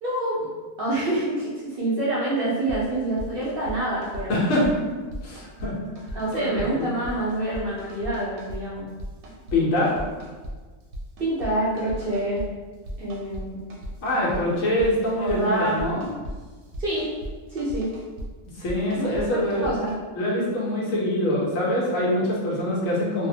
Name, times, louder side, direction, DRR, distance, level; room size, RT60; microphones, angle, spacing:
voice 1, 0.0-0.5 0.8-4.4 6.1-8.9 11.2-12.4 13.0-13.6 15.2-15.8 16.8-17.1 17.5-17.9 19.0-19.9, right 1 dB, 55° right, -8 dB, 0.6 m, -27 dB
sound 1, 2.7-2.8 3.2-3.8 4.0-4.7 5.1-5.7 6.0-6.7 7.0-8.6 9.0-9.6 9.8-10.5 10.8-11.5 11.8-12.5 12.8-13.4 13.7-14.4 14.8-15.4 15.6-17.3 17.6-18.3 18.7-19.2 19.5-19.9, equal, 85° right, 1.0 m, -36 dB
voice 2, 4.3-4.7 5.2-5.8 6.3-6.9 9.5-10.0 14.0-16.1 18.6-19.8 20.1-23.3, left 1 dB, 75° left, -4 dB, 1.1 m, -24 dB
2.6 x 2.0 x 2.7 m, 1.4 s
omnidirectional pair, 1.4 m